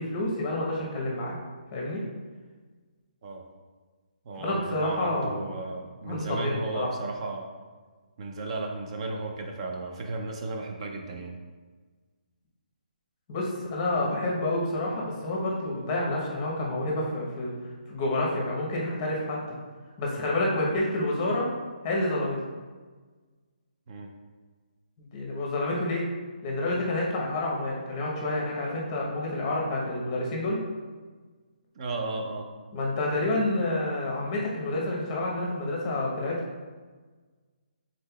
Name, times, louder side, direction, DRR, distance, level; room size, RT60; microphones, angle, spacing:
voice 1, 0.0-1.4 1.7-2.0 4.4-5.5 6.0-6.9 13.3-17.5 17.9-19.4 20.0-21.5 21.8-22.4 25.0-26.1 26.4-30.6 32.7-36.4, left 1 dB, 25° left, -2 dB, 0.8 m, -29 dB
voice 2, 4.3-7.5 8.2-11.3 23.9-24.1 31.8-32.5, right 2 dB, 40° right, 2 dB, 0.4 m, -34 dB
5.4 x 3.7 x 2.3 m, 1.4 s
hypercardioid pair, 160°, 5 cm